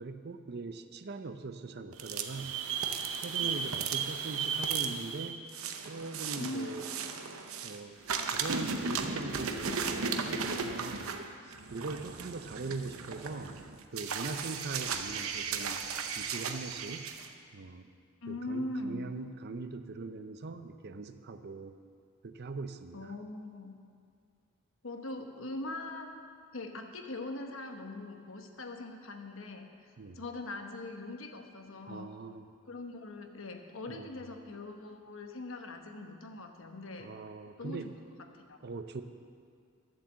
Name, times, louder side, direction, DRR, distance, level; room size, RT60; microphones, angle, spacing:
voice 1, 0.0-2.6 3.2-5.4 5.8-6.9 7.6-8.0 8.3-11.1 11.4-13.6 13.9-15.8 16.2-17.1 17.5-17.9 18.3-21.8 22.2-23.1 30.0-30.2 31.9-32.5 33.9-34.3 37.0-37.9 38.6-39.0, right 3 dB, 50° right, 9 dB, 0.6 m, -41 dB
sound 1, 1.9-7.8 8.1-17.3, right 6 dB, 80° right, 0.8 m, -35 dB
voice 2, 3.4-3.7 6.3-6.8 18.2-19.0 22.9-23.8 24.8-26.1 26.5-32.1 32.7-37.1 37.6-37.9 38.2-38.6, left 2 dB, 65° left, 5 dB, 1.1 m, -41 dB
12.0 x 7.7 x 7.4 m, 2.2 s
head